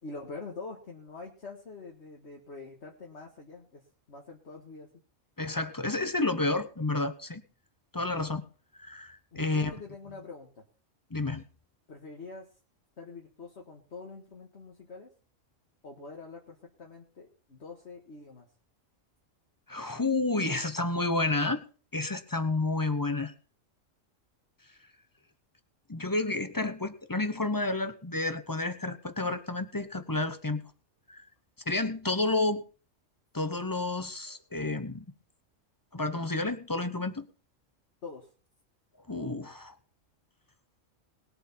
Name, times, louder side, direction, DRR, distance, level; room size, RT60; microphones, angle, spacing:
voice 1, 0.0-3.8 4.1-4.9 9.3-10.6 11.9-12.5 13.0-15.1 15.8-18.5 38.0-38.3, left 3 dB, 55° left, 0 dB, 1.9 m, -45 dB
voice 2, 5.4-7.4 7.9-8.4 8.8-9.7 11.1-11.4 19.7-21.6 21.9-23.3 25.9-30.6 31.1-31.2 31.7-32.6 33.3-35.1 35.9-37.3 39.1-39.8, left 2 dB, 20° left, 10 dB, 0.8 m, -30 dB
20.0 x 7.8 x 4.3 m, 0.37 s
omnidirectional pair, 1.3 m